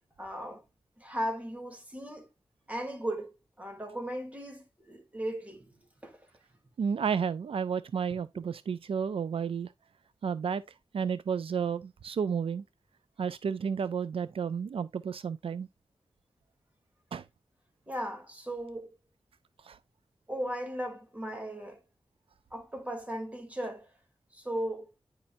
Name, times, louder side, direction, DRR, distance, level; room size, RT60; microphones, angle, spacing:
voice 1, 0.2-0.6 1.0-2.3 2.7-6.2 8.1-8.4 17.9-18.9 20.3-21.8 22.5-23.9 24.3-24.9, right 1 dB, 15° right, 3.0 m, -37 dB
voice 2, 6.8-9.7 10.2-10.6 10.9-12.6 13.2-15.7 17.1-17.2 19.6-19.8, right 6 dB, 85° right, 0.4 m, -32 dB
9.7 x 5.7 x 2.6 m
wide cardioid pair, 85°, 9 cm